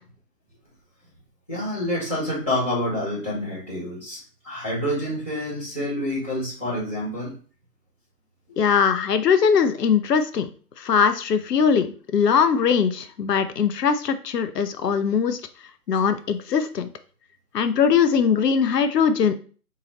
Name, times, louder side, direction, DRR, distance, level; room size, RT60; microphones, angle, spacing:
voice 1, 1.5-4.2 4.4-7.3, left 1 dB, 10° left, -16 dB, 1.3 m, -27 dB
voice 2, 8.6-10.5 10.8-15.4 15.9-16.9 17.5-19.4, left 6 dB, 90° left, 10 dB, 0.6 m, -21 dB
3.8 x 2.7 x 3.1 m, 0.39 s
hypercardioid pair, 175°, 47 cm